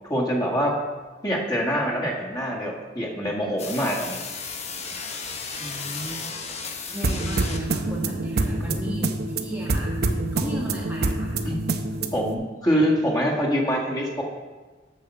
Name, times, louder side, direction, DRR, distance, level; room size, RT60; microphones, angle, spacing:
voice 1, 0.1-0.8 1.2-4.2 8.6-8.7 11.5-11.6 12.1-14.2, equal, 25° left, -3 dB, 1.8 m, -25 dB
sound 1, 3.6-7.9, left 5 dB, 40° left, 1.0 m, -34 dB
voice 2, 5.6-6.2 6.9-11.4, equal, 10° right, -4 dB, 1.3 m, -35 dB
sound 2, 7.0-12.3, right 2 dB, 60° right, 0.8 m, -26 dB
8.4 x 6.0 x 7.0 m, 1.3 s
head